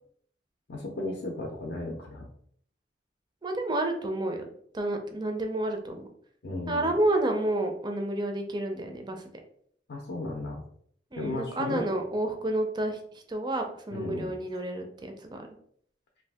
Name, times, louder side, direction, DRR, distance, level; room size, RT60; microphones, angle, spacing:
voice 1, 0.7-2.3 6.4-6.9 9.9-10.6 11.2-11.9 13.9-14.3, left 2 dB, 60° left, 0 dB, 0.5 m, -35 dB
voice 2, 3.4-4.5 4.7-6.0 6.7-9.2 11.1-13.0 13.3-15.5, right 1 dB, 25° right, 4 dB, 0.4 m, -30 dB
2.6 x 2.4 x 3.4 m, 0.63 s
head